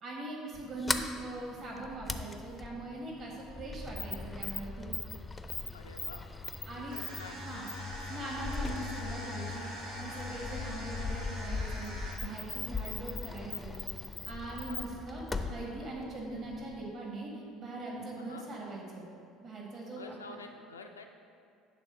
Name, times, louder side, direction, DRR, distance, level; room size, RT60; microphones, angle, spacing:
voice 1, 0.0-4.9 6.7-7.0 7.4-7.7 8.1-9.7 10.0-11.9 12.2-13.8 14.2-19.1 19.4-20.4, right 2 dB, 40° right, -3 dB, 1.5 m, -41 dB
Sliding door, 0.5-16.9, left 3 dB, 15° left, 0.5 m, -40 dB
voice 2, 5.7-6.2 6.9-7.4 14.5-14.8 18.2-18.5 19.9-21.1, left 4 dB, 80° left, 4 dB, 0.3 m, -48 dB
sound 1, 6.9-12.4, left 2 dB, 80° right, 1.7 m, -42 dB
8.3 x 3.6 x 5.3 m, 2.4 s
figure-of-eight pair, 60°, 0 cm